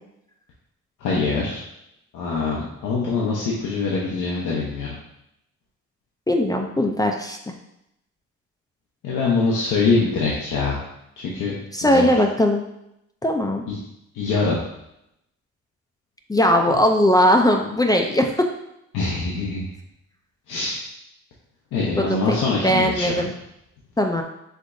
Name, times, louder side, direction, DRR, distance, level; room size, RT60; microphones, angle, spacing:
voice 1, 1.0-1.6 2.1-4.9 9.0-10.8 11.2-12.2 13.7-13.8 14.1-14.6 18.9-19.7 20.5-20.8 21.7-23.3, left 4 dB, 90° left, -5 dB, 0.9 m, -24 dB
voice 2, 6.3-7.4 11.7-12.6 13.2-13.6 16.3-18.5 22.0-22.4 22.6-23.3 24.0-24.2, equal, 15° left, 3 dB, 0.4 m, -19 dB
5.1 x 3.7 x 2.6 m, 0.82 s
cardioid pair, 90°, 30 cm